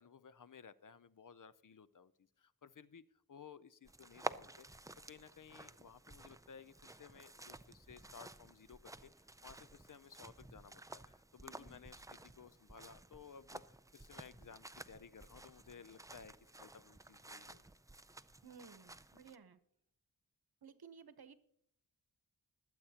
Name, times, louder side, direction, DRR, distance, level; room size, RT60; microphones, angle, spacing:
voice 1, 0.0-2.1 2.4-3.0 3.3-13.6 13.9-17.6, left 6 dB, 55° left, 15 dB, 0.6 m, -57 dB
sound 1, 3.8-19.4, right 2 dB, 10° right, 0.4 m, -52 dB
voice 2, 11.4-11.8 18.4-19.6 20.6-21.3, right 6 dB, 75° right, 10 dB, 1.0 m, -57 dB
21.0 x 8.3 x 2.9 m, 0.69 s
wide cardioid pair, 65°, 38 cm